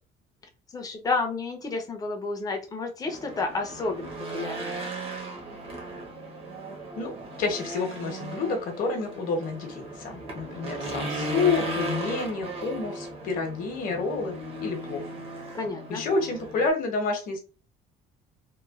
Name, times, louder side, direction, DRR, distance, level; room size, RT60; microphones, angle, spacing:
voice 1, 0.7-4.8 15.5-16.0, left 3 dB, 20° left, 3 dB, 0.6 m, -31 dB
Race car auto racing / Engine, 3.1-16.7, right 1 dB, 35° right, 0.9 m, -36 dB
voice 2, 7.4-15.0 15.9-17.4, left 4 dB, 55° left, 3 dB, 0.9 m, -29 dB
3.0 x 2.2 x 2.4 m, 0.32 s
cardioid pair, 145°, 17 cm